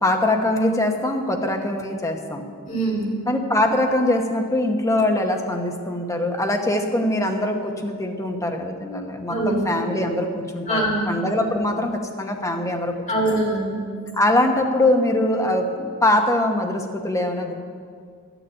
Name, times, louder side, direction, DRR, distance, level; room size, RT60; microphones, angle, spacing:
voice 1, 0.0-2.5 3.3-10.3 10.5-13.0 14.1-17.5, left 1 dB, 15° left, 3 dB, 1.0 m, -22 dB
voice 2, 2.6-3.1 9.3-9.6 10.7-11.1 13.1-13.7, right 1 dB, 35° left, -5 dB, 3.3 m, -23 dB
12.0 x 7.0 x 8.6 m, 2.1 s
head